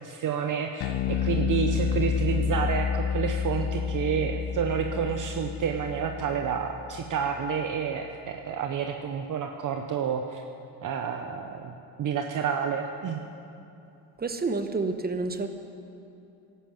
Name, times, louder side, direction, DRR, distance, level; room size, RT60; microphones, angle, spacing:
voice 1, 0.0-10.4 10.8-13.2, right 7 dB, 45° right, 4 dB, 0.9 m, -29 dB
Bass guitar, 0.8-7.3, left 7 dB, 60° left, 1.1 m, -29 dB
voice 2, 14.2-15.5, right 3 dB, 20° right, 8 dB, 1.1 m, -29 dB
12.0 x 11.5 x 7.5 m, 2.7 s
supercardioid pair, 95°, 46 cm